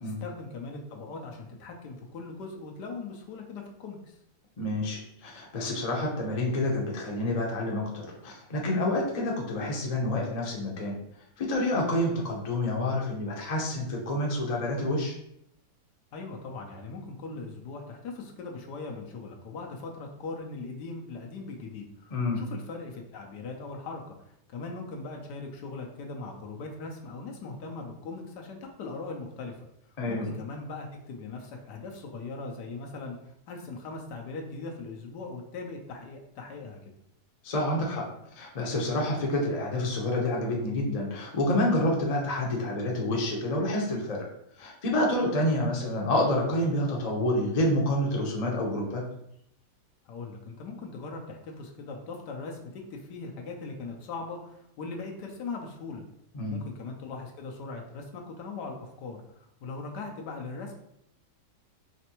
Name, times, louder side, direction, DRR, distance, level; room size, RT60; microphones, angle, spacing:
voice 1, 0.0-4.2 16.1-29.7 30.1-33.2 33.5-36.8 50.0-56.0 56.5-60.8, left 3 dB, 80° left, 1 dB, 1.4 m, -40 dB
voice 2, 4.6-10.9 11.4-15.1 22.1-22.4 30.0-30.3 37.4-38.0 38.3-44.2 44.6-49.0 56.3-56.6, left 1 dB, 30° left, -2 dB, 0.7 m, -28 dB
5.1 x 3.3 x 3.0 m, 0.76 s
omnidirectional pair, 1.8 m